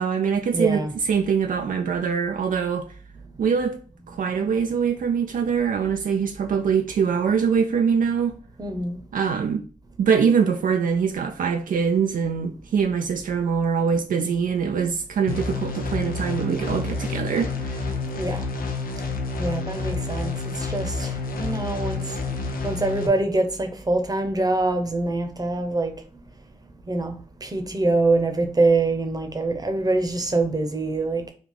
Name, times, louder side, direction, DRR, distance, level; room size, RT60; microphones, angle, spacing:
voice 1, 0.0-2.9 3.4-8.3 9.1-9.6 10.0-17.8, right 6 dB, 70° right, 0.4 m, -23 dB
voice 2, 0.5-0.9 8.6-8.9 18.1-18.4 19.4-20.3 20.6-22.0 22.6-25.9 26.9-31.2, right 2 dB, 25° right, 0.8 m, -24 dB
sound 1, 15.3-23.1, left 3 dB, 80° left, 0.6 m, -29 dB
3.5 x 2.3 x 3.6 m
cardioid pair, 50°, 15 cm